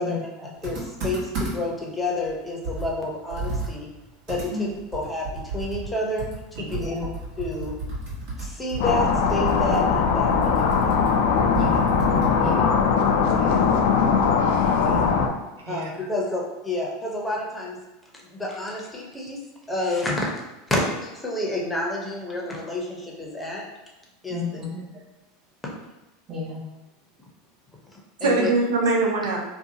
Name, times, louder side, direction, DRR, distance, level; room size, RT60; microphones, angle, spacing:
voice 1, 0.0-3.9 4.3-7.1 7.4-7.7 8.4-11.1 15.7-17.8 18.3-19.4 19.7-20.2 20.7-23.6 24.2-24.6 28.2-28.5, left 1 dB, 10° left, -2 dB, 0.7 m, -29 dB
Computer keyboard, 0.6-1.8 2.2-2.3 2.6-5.9 6.2-12.7, right 2 dB, 65° right, 1.1 m, -33 dB
voice 2, 6.7-7.1 11.6-11.9 12.4-12.7 13.3-13.6 14.8-15.1 24.3-24.8 26.3-26.6, left 3 dB, 30° right, -2 dB, 0.8 m, -32 dB
sound 1, 8.8-15.3, left 6 dB, 65° left, 0.3 m, -20 dB
voice 3, 14.4-14.8 15.7-15.8 28.2-29.4, right 3 dB, 85° right, -3 dB, 0.6 m, -24 dB
2.7 x 2.2 x 2.7 m, 1.1 s
hypercardioid pair, 95°, 0 cm